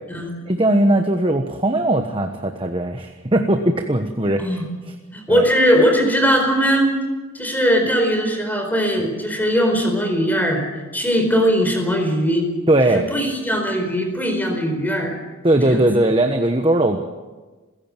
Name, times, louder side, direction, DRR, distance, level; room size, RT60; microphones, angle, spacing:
voice 1, 0.5-4.4 5.3-5.4 12.7-13.1 15.4-17.0, right 1 dB, 25° right, 5 dB, 1.2 m, -19 dB
voice 2, 5.1-7.0 7.3-10.6 10.9-12.5 12.9-15.1 15.6-15.8, equal, 10° left, 3 dB, 4.7 m, -19 dB
27.5 x 16.5 x 7.4 m, 1.3 s
head